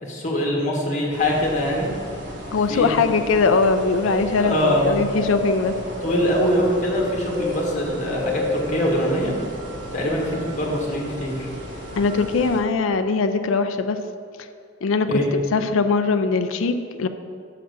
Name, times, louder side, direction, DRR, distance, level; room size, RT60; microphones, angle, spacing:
voice 1, 0.0-1.9 2.7-3.0 4.4-4.9 6.0-9.3 9.9-11.5 15.1-15.3, left 1 dB, 40° left, -2 dB, 1.7 m, -23 dB
sound 1, 1.1-12.6, equal, 60° right, 1.5 m, -32 dB
voice 2, 2.5-5.7 12.0-14.0 14.8-17.1, left 4 dB, 90° left, 8 dB, 0.4 m, -21 dB
6.4 x 5.8 x 6.5 m, 2.3 s
head